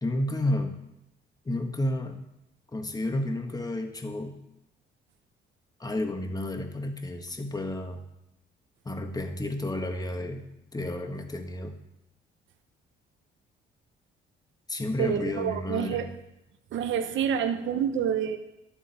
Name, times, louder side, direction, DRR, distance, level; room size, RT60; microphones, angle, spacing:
voice 1, 0.0-0.8 1.4-2.2 2.7-4.4 5.8-8.0 8.8-10.4 10.7-11.7 14.7-16.1, left 1 dB, 20° left, 5 dB, 1.4 m, -31 dB
voice 2, 15.0-16.1 16.7-18.4, right 8 dB, 75° right, 8 dB, 0.9 m, -28 dB
11.5 x 7.3 x 4.2 m, 0.86 s
cardioid pair, 90°, 20 cm